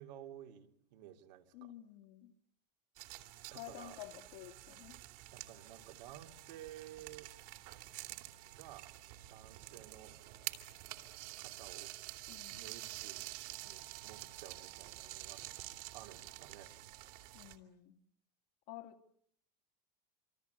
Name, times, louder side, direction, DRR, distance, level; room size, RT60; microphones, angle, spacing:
voice 1, 0.0-1.7 3.5-4.0 5.3-7.3 8.5-8.9 9.3-10.2 11.4-11.9 12.5-13.3 13.6-15.5 15.9-16.7, right 12 dB, 90° right, 3.1 m, -53 dB
voice 2, 1.5-2.3 3.5-5.0 12.3-12.6 17.3-17.9 18.7-19.0, left 15 dB, 70° left, 2.6 m, -51 dB
sound 1, 3.0-17.6, right 17 dB, 70° right, 3.0 m, -49 dB
27.0 x 27.0 x 8.2 m
supercardioid pair, 155°, 21 cm